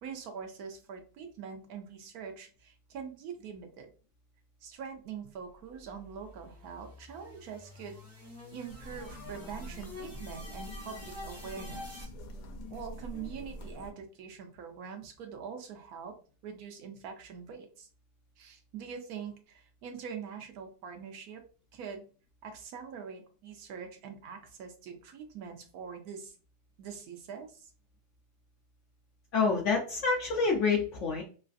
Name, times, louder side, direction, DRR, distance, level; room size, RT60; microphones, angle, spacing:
voice 1, 0.0-3.9 4.6-12.1 12.7-16.2 16.4-17.9 18.4-21.4 21.7-22.0 22.4-26.3 26.8-27.7, right 6 dB, 75° right, 5 dB, 1.0 m, -44 dB
sound 1, 5.6-12.0, left 2 dB, 15° right, 0.6 m, -48 dB
sound 2, 8.7-13.9, equal, 85° left, 1.2 m, -45 dB
voice 2, 29.3-31.2, left 4 dB, 65° left, 0 dB, 0.7 m, -27 dB
3.1 x 2.4 x 2.4 m, 0.38 s
omnidirectional pair, 1.7 m